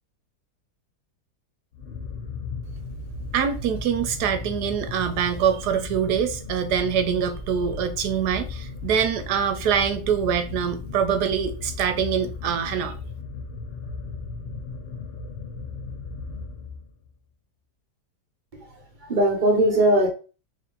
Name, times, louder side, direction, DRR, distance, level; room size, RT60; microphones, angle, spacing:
sound 1, 1.7-17.1, left 4 dB, 65° left, 0.6 m, -36 dB
voice 1, 3.3-13.0, right 8 dB, 75° right, 1.2 m, -24 dB
voice 2, 19.0-20.1, right 1 dB, 35° right, 1.0 m, -20 dB
3.4 x 2.8 x 3.7 m
omnidirectional pair, 1.8 m